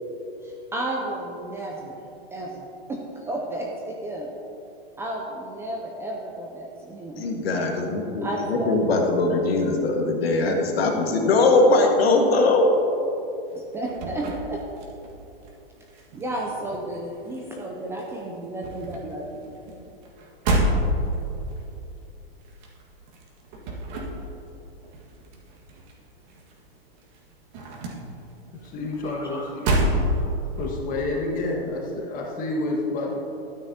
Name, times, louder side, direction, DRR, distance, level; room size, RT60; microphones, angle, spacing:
voice 1, 0.4-2.0 2.3-4.3 5.0-7.3 8.2-8.7 13.5-14.6 16.1-19.5 29.0-29.7, right 1 dB, 10° right, -2 dB, 0.4 m, -33 dB
voice 2, 7.2-12.7, left 2 dB, 80° left, 2 dB, 1.6 m, -21 dB
sound 1, 13.5-15.5 15.8-17.7 18.0-26.7 26.9-30.7, right 1 dB, 50° right, 1.7 m, -29 dB
voice 3, 28.7-29.9 30.6-33.2, left 2 dB, 25° left, -1 dB, 1.6 m, -29 dB
12.5 x 9.3 x 2.8 m, 2.9 s
hypercardioid pair, 145°, 30 cm